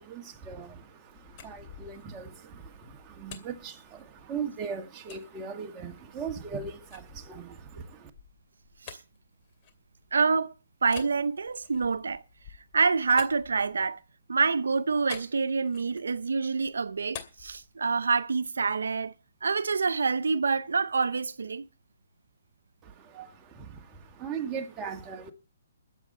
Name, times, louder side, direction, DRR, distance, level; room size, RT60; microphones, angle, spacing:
voice 1, 0.0-8.1 22.8-25.3, right 6 dB, 20° right, 2.0 m, -39 dB
sound 1, 1.1-4.5 5.1-5.3 5.8-10.3 10.8-14.1 15.1-16.2 16.5-18.3, left 8 dB, 30° left, 2.5 m, -49 dB
voice 2, 10.1-10.5 10.8-12.2 12.7-14.0 14.3-19.1 19.4-21.7, right 4 dB, 90° right, 0.7 m, -27 dB
21.0 x 8.4 x 4.3 m
hypercardioid pair, 155°, 0 cm